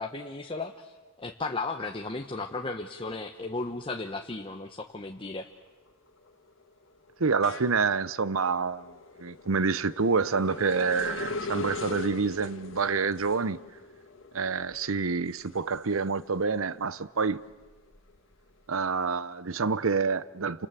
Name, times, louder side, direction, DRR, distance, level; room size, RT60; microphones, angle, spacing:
voice 1, 0.0-5.5, left 3 dB, 25° left, 1.0 m, -35 dB
sound 1, 4.7-4.9 5.3-16.6 17.0-18.7, left 2 dB, 60° left, 1.9 m, -41 dB
voice 2, 7.2-8.9 9.2-13.6 14.3-17.4 18.7-20.7, right 4 dB, 70° right, 0.8 m, -27 dB
29.0 x 26.5 x 7.5 m
head